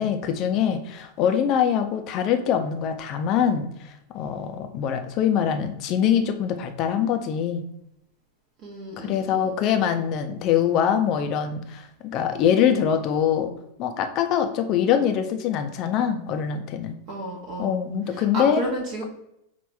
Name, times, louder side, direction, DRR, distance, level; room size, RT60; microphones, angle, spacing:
voice 1, 0.0-3.7 4.1-7.6 9.0-13.5 13.8-16.9 17.6-18.6, left 8 dB, 40° left, 6 dB, 0.6 m, -23 dB
voice 2, 8.6-9.6 17.1-17.8 18.1-19.0, right 1 dB, 40° right, -3 dB, 1.0 m, -32 dB
5.5 x 2.5 x 3.3 m, 0.81 s
figure-of-eight pair, 90°, 0 cm